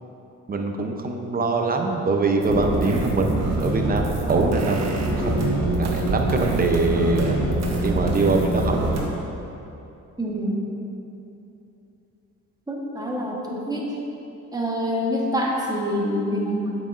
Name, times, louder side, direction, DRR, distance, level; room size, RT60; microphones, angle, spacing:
voice 1, 0.5-7.4 7.8-8.9, right 3 dB, 30° right, 3 dB, 0.7 m, -23 dB
sound 1, 2.4-9.0, right 2 dB, 60° right, 1.2 m, -24 dB
voice 2, 10.2-10.6 12.7-13.9 14.5-16.8, equal, 15° right, -3 dB, 1.2 m, -26 dB
8.0 x 6.1 x 2.5 m, 2.9 s
cardioid pair, 90°, 30 cm